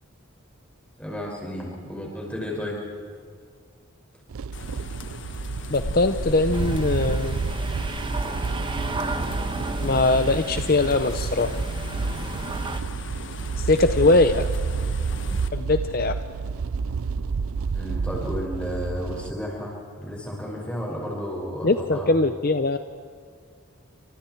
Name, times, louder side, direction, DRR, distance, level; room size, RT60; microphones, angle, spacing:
voice 1, 1.0-2.8 14.0-14.2 17.7-22.1, equal, 5° left, -2 dB, 6.0 m, -32 dB
sound 1, 4.3-19.3, right 5 dB, 85° right, 0.5 m, -30 dB
sound 2, 4.5-15.5, left 2 dB, 60° left, 1.3 m, -38 dB
voice 2, 5.7-7.4 9.8-11.6 13.6-14.4 15.5-16.2 21.6-22.8, left 2 dB, 45° left, 9 dB, 0.7 m, -21 dB
sound 3, 6.5-12.8, right 2 dB, 25° right, 1.0 m, -32 dB
30.0 x 26.5 x 4.7 m, 2.1 s
head